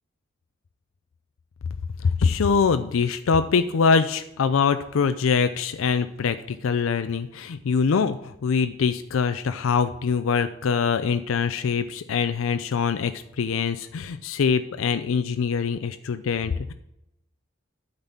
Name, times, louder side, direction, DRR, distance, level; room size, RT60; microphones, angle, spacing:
voice 1, 2.0-16.7, left 5 dB, 75° left, 10 dB, 0.4 m, -23 dB
8.9 x 4.0 x 7.1 m, 0.84 s
head